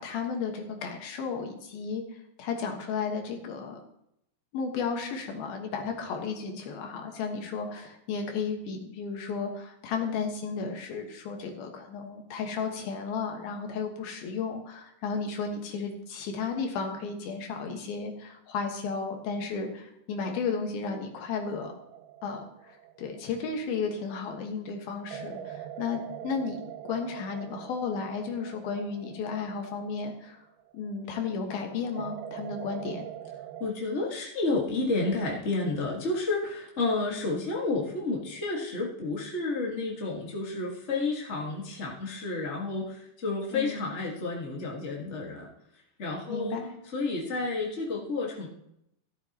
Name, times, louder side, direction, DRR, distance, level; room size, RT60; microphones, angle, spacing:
voice 1, 0.0-3.8 4.5-21.7 22.2-26.6 26.9-30.5 30.7-33.1 43.5-43.8 46.3-46.7, left 5 dB, 80° left, 3 dB, 3.3 m, -33 dB
sound 1, 21.5-24.2 25.1-30.9 32.0-33.7, right 10 dB, 85° right, 2.5 m, -43 dB
voice 2, 33.6-45.5 46.0-46.6 46.9-48.5, left 3 dB, 40° left, -2 dB, 0.9 m, -31 dB
13.0 x 13.0 x 3.0 m, 0.77 s
omnidirectional pair, 4.3 m